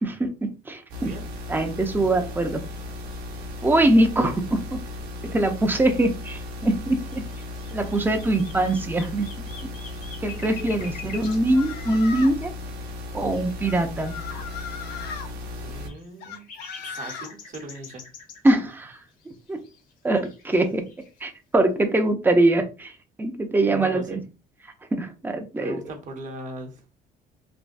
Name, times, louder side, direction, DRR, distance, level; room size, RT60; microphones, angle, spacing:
voice 1, 0.0-1.1 1.5-2.6 3.6-4.8 5.2-7.3 7.7-9.7 10.2-12.5 13.1-14.2 18.4-19.0 19.5-19.6 20.0-20.9 21.2-24.2 24.9-25.8, right 2 dB, 10° right, 0.5 m, -23 dB
sound 1, 0.9-15.9, left 2 dB, 80° right, 0.9 m, -36 dB
sound 2, 6.6-6.7 6.9-11.4 13.3-13.7 14.5-14.6 15.0-15.1 15.5-18.6 19.1-19.9 20.2-21.2, left 5 dB, 55° left, 0.9 m, -44 dB
sound 3, 11.2-12.4 13.6-15.3 16.2-17.3, left 6 dB, 80° left, 0.5 m, -37 dB
voice 2, 15.6-16.5 16.8-18.0 23.7-24.2 25.6-26.8, right 2 dB, 50° right, 1.0 m, -39 dB
3.4 x 2.2 x 2.5 m
cardioid pair, 110°, 17 cm